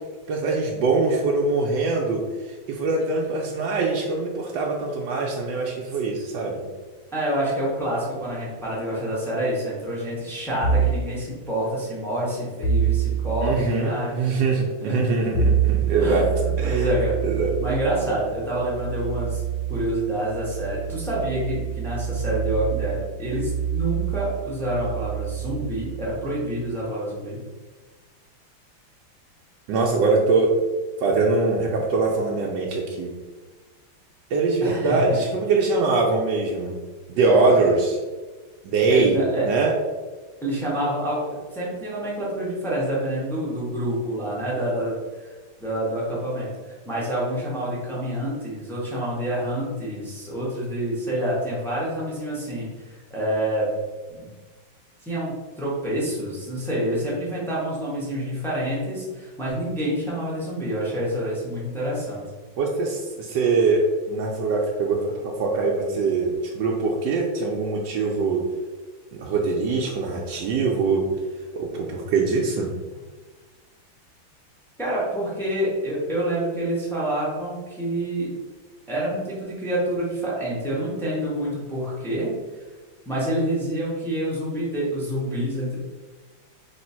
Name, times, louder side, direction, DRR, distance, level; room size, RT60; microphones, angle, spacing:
voice 1, 0.3-2.2 2.7-6.6 13.4-16.3 16.6-16.9 17.2-17.5 29.7-30.5 31.0-33.1 34.3-36.8 37.1-38.0 38.6-39.2 39.4-39.7 62.6-65.1 65.4-68.4 69.1-71.0 71.5-72.7, right 3 dB, 75° right, -2 dB, 1.1 m, -23 dB
voice 2, 7.1-14.2 14.8-15.0 16.0-17.1 17.6-19.4 19.7-27.4 34.6-35.2 38.9-39.5 40.4-41.2 41.5-45.3 45.6-46.5 46.8-53.7 54.2-54.3 55.0-62.2 72.9-73.0 74.8-78.3 78.9-82.3 83.1-85.8, right 1 dB, 5° left, -7 dB, 0.4 m, -27 dB
sound 1, 10.6-11.1 12.6-13.6 15.3-26.7, right 7 dB, 75° left, 1.2 m, -27 dB
3.3 x 3.1 x 4.3 m, 1.3 s
omnidirectional pair, 2.3 m